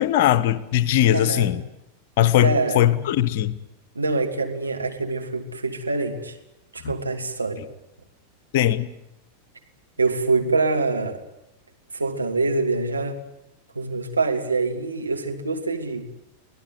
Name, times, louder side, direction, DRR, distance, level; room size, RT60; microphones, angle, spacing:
voice 1, 0.0-1.6 2.2-3.6 6.8-6.9 8.5-8.9, left 12 dB, 50° left, 15 dB, 1.3 m, -20 dB
voice 2, 1.1-1.5 2.4-3.0 3.9-6.4 6.7-7.6 10.0-11.2 11.9-13.2 13.7-16.1, right 3 dB, 80° right, 3 dB, 2.8 m, -25 dB
25.0 x 17.0 x 9.7 m, 0.88 s
figure-of-eight pair, 90°, 0 cm